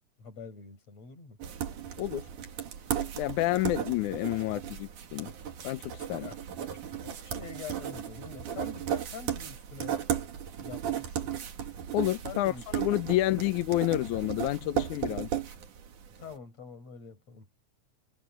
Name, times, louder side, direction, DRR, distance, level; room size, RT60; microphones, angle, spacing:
voice 1, 0.2-1.4 6.2-6.3 7.0-10.0 10.6-11.3 12.2-12.6 16.2-17.5, left 5 dB, 60° left, 6.1 m, -45 dB
sound 1, 1.4-16.2, right 9 dB, 85° right, 3.7 m, -35 dB
voice 2, 3.2-5.3 5.6-6.3 11.9-15.3, left 16 dB, 85° left, 2.2 m, -29 dB
omnidirectional pair, 3.4 m